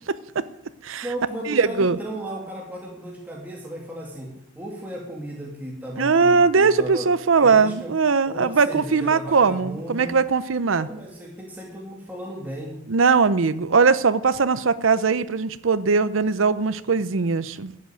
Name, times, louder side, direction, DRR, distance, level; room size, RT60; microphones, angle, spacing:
voice 1, 0.1-0.4 0.8-1.1 1.5-2.0 6.0-10.9 12.9-17.7, right 4 dB, 90° right, 14 dB, 0.7 m, -20 dB
voice 2, 1.0-7.1 7.4-7.9 8.3-10.2 10.8-12.8, right 1 dB, 10° right, -3 dB, 2.2 m, -35 dB
13.0 x 8.0 x 9.0 m, 0.80 s
head